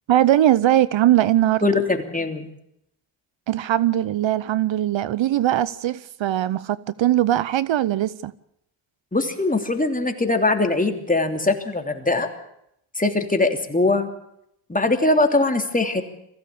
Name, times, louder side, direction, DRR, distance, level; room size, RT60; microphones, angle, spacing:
voice 1, 0.1-1.7 3.5-8.3, right 13 dB, 65° right, 0.8 m, -20 dB
voice 2, 1.6-2.5 9.1-12.3 13.0-14.1 14.7-16.0, left 2 dB, 15° left, 3.1 m, -21 dB
22.0 x 15.5 x 8.5 m
cardioid pair, 75°, 50 cm